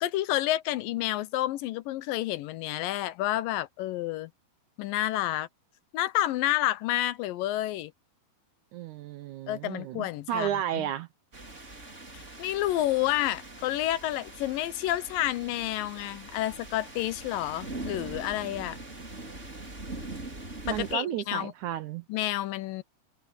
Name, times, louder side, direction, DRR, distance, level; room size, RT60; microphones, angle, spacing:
voice 1, 0.0-4.3 4.8-5.5 5.9-7.9 9.5-10.5 10.7-10.9 12.1-18.8 20.7-21.5 22.1-22.8, left 14 dB, 80° left, 2.4 m, -29 dB
voice 2, 8.7-11.1 20.6-22.0, right 11 dB, 75° right, 1.9 m, -33 dB
sound 1, 11.3-20.9, right 2 dB, 20° right, 4.4 m, -42 dB
omnidirectional pair, 4.1 m